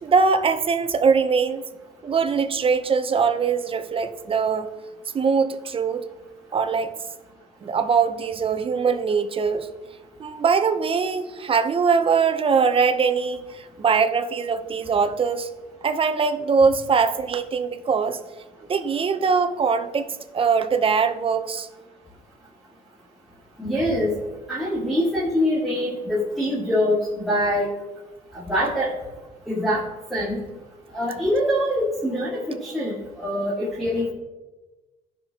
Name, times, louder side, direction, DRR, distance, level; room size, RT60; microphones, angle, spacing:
voice 1, 0.0-1.7 2.0-4.7 5.1-6.1 6.5-6.9 7.6-9.7 10.2-15.5 15.8-18.2 18.7-21.7, right 5 dB, 30° right, 8 dB, 0.8 m, -22 dB
voice 2, 23.6-24.1 24.5-27.7 28.3-28.9 29.5-29.8 30.1-30.4 30.9-34.1, equal, ahead, -8 dB, 2.1 m, -24 dB
16.5 x 5.9 x 2.9 m, 1.2 s
cardioid pair, 110°, 17 cm